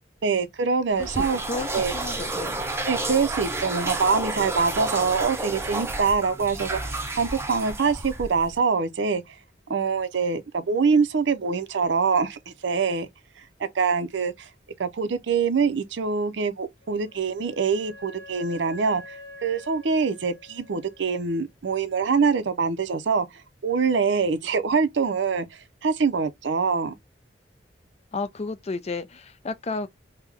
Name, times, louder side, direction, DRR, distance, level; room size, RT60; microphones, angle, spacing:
voice 1, 0.2-1.4 1.7-1.9 2.9-9.2 9.7-13.1 13.7-14.5 14.8-19.1 19.4-23.3 23.6-25.5 25.8-26.9, right 5 dB, 75° right, 0.5 m, -24 dB
sound 1, 0.9-8.6, right 2 dB, 15° right, 0.6 m, -31 dB
voice 2, 1.0-2.6 28.1-29.9, left 3 dB, 35° left, 0.5 m, -32 dB
Wind instrument woodwind instrument, 16.8-21.5, left 1 dB, 70° left, 1.3 m, -46 dB
3.4 x 2.2 x 3.3 m
head